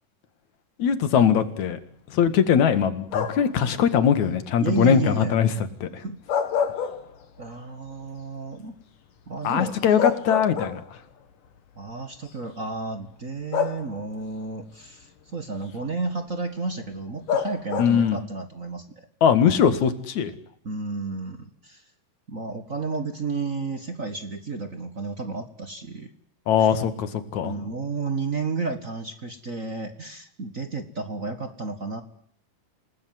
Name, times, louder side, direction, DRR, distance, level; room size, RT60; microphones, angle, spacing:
voice 1, 0.8-1.8 2.1-5.5 5.8-5.9 9.4-10.8 17.8-18.2 19.2-20.3 26.5-27.5, left 8 dB, 65° left, 10 dB, 3.1 m, -21 dB
sound 1, 3.1-3.6 6.1-7.5 7.9-8.0 9.5-9.6 10.0-11.1 12.1-12.3 13.5-14.2 17.3-18.2, left 7 dB, 80° left, 3.7 m, -27 dB
voice 2, 4.6-5.3 6.0-6.2 7.4-8.7 9.3-9.8 11.8-19.1 20.6-21.8 22.3-26.1 26.6-26.7 27.4-32.0, right 3 dB, 35° right, 8 dB, 1.3 m, -32 dB
28.0 x 19.5 x 9.5 m, 0.64 s
omnidirectional pair, 3.7 m